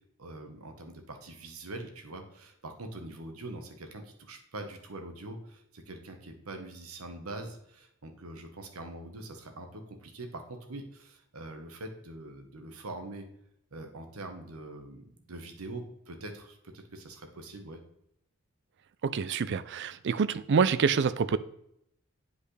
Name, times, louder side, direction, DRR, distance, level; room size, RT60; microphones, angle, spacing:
voice 1, 0.2-13.3 13.7-17.8, right 2 dB, 85° right, 5 dB, 1.2 m, -43 dB
voice 2, 19.0-21.4, right 5 dB, 55° right, 15 dB, 0.4 m, -26 dB
8.5 x 5.2 x 3.2 m, 0.75 s
head